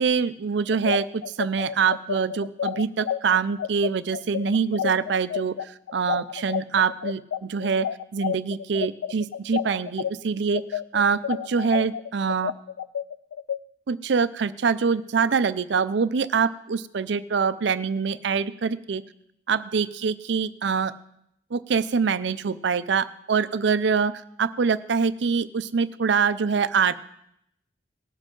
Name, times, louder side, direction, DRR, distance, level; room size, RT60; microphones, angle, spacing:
voice 1, 0.0-10.6 10.9-12.5 13.9-19.0 19.5-20.9 21.5-24.1 24.4-26.9, right 5 dB, 65° right, 14 dB, 0.5 m, -24 dB
sound 1, 0.7-10.1 10.5-13.6, left 9 dB, 80° left, 0.3 m, -30 dB
18.5 x 7.4 x 3.8 m, 0.76 s
head